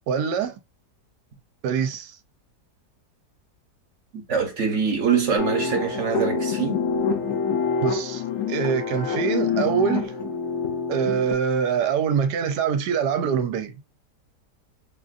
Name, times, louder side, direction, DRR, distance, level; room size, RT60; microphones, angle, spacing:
voice 1, 0.1-0.5 1.6-2.2 7.8-10.1 10.9-13.8, right 7 dB, 80° right, 1.2 m, -24 dB
voice 2, 4.1-6.9, right 6 dB, 50° right, 1.2 m, -24 dB
sound 1, 5.4-11.3, left 5 dB, 75° left, 1.3 m, -26 dB
5.2 x 2.5 x 2.4 m
omnidirectional pair, 1.8 m